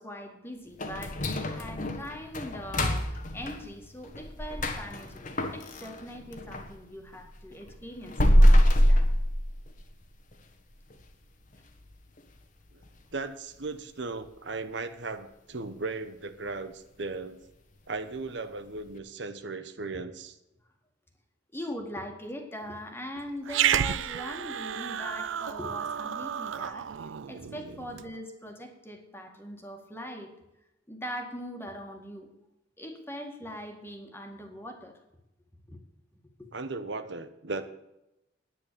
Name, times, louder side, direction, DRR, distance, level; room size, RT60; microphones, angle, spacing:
voice 1, 0.0-9.1 21.5-26.9 27.3-30.3 30.9-32.3 32.8-35.0 35.7-35.8 36.4-36.5, equal, 10° left, 3 dB, 2.0 m, -41 dB
sound 1, 0.8-6.7 7.1-10.0 10.3-10.4 10.9-11.0 11.5-11.9 12.2-12.3 12.8-12.9, equal, 45° left, 1.5 m, -25 dB
voice 2, 13.1-17.4 17.9-20.4 36.5-37.6, right 3 dB, 65° right, 10 dB, 1.0 m, -36 dB
Growling, 23.5-28.1, right 9 dB, 80° right, 0.5 m, -31 dB
10.0 x 9.9 x 6.9 m, 0.89 s
head